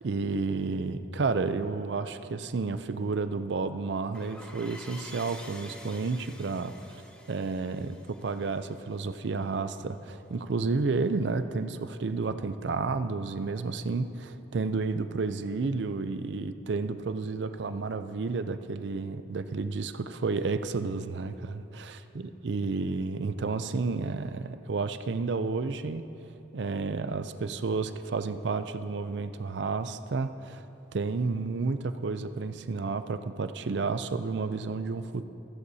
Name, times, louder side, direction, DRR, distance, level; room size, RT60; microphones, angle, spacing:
voice 1, 0.0-6.7 7.3-22.0 22.4-26.0 26.5-30.6 30.9-35.3, right 4 dB, 80° right, 11 dB, 0.5 m, -31 dB
sound 1, 4.1-9.4, left 1 dB, 5° left, 0.7 m, -49 dB
15.0 x 14.0 x 2.8 m, 2.8 s
head